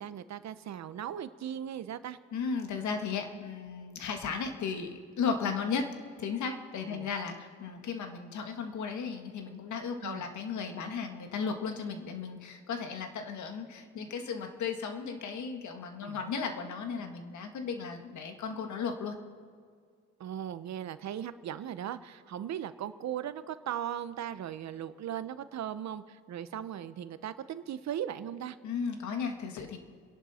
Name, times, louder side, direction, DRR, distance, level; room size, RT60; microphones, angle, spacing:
voice 1, 0.0-2.2 6.9-7.1 10.0-10.2 16.0-16.2 20.2-28.6, right 10 dB, 65° right, 13 dB, 0.9 m, -38 dB
voice 2, 2.3-5.9 6.2-19.2 28.6-29.8, left 5 dB, 70° left, 5 dB, 1.9 m, -35 dB
29.0 x 11.0 x 4.4 m, 2.1 s
cardioid pair, 90°, 30 cm